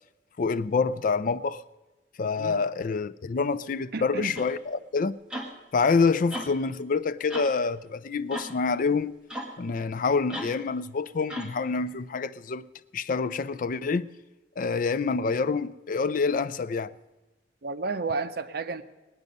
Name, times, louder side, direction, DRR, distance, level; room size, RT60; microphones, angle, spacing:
voice 1, 0.4-1.6 2.2-5.2 5.7-9.2 9.6-12.6 12.9-14.1 14.6-16.9, left 4 dB, 50° left, 0.4 m, -27 dB
voice 2, 3.9-4.4 17.6-18.8, right 4 dB, 60° right, 0.7 m, -31 dB
sound 1, 4.3-4.6 5.3-5.5 6.3-6.6 7.3-7.6 8.3-8.6 9.3-9.5 10.3-10.6 11.3-11.6, equal, 5° right, 1.6 m, -36 dB
19.5 x 9.5 x 5.3 m
head